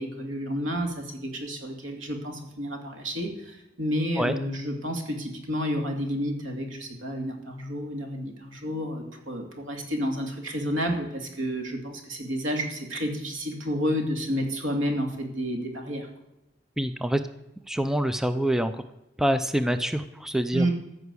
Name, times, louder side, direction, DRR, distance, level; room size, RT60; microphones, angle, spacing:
voice 1, 0.0-16.1 20.5-20.7, equal, 85° right, 3 dB, 2.6 m, -30 dB
voice 2, 16.8-17.2 17.7-18.8 19.2-20.7, right 1 dB, ahead, 10 dB, 0.5 m, -26 dB
14.0 x 6.0 x 8.3 m, 0.93 s
head